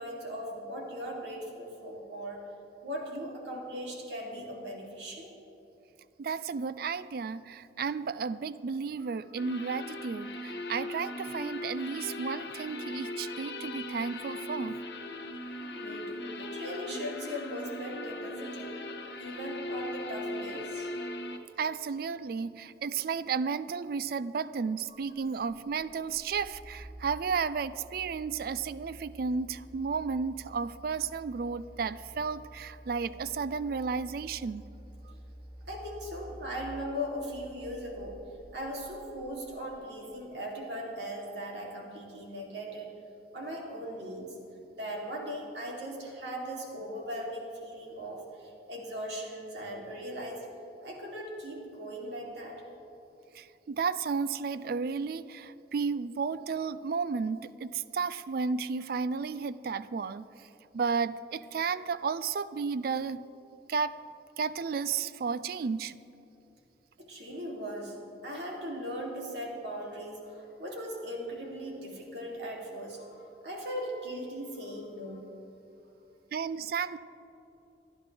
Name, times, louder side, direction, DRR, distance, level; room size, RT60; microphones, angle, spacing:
voice 1, 0.0-2.4 2.8-5.3 9.0-9.1 9.4-9.6 15.7-18.7 19.2-20.9 24.9-25.0 35.7-38.2 38.5-42.9 43.3-44.3 44.7-50.4 50.8-52.6 67.0-75.2, equal, 75° right, -2 dB, 3.0 m, -39 dB
voice 2, 6.2-14.8 21.6-34.6 53.4-60.2 60.7-63.2 63.7-64.0 64.4-65.9 76.3-77.0, right 5 dB, 55° right, 15 dB, 0.4 m, -33 dB
sound 1, 9.4-21.4, left 1 dB, 65° left, 1.1 m, -39 dB
sound 2, 24.9-39.6, equal, 20° right, 3.1 m, -50 dB
27.5 x 10.5 x 3.5 m, 2.8 s
head